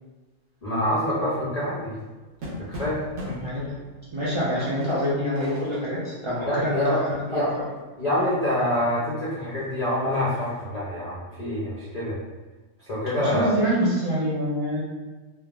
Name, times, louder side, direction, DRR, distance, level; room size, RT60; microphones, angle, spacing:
voice 1, 0.6-2.0 2.6-3.0 3.3-3.4 6.4-7.0 7.3-7.5 8.0-12.2 12.8-13.5, left 1 dB, 55° left, -7 dB, 0.4 m, -26 dB
sound 1, 1.5-8.3 8.7-8.8 9.1-10.6, equal, 65° right, 1.0 m, -41 dB
voice 2, 3.4-3.8 4.1-7.5 13.2-14.8, equal, 45° right, -9 dB, 0.4 m, -26 dB
3.3 x 2.0 x 2.3 m, 1.2 s
omnidirectional pair, 1.3 m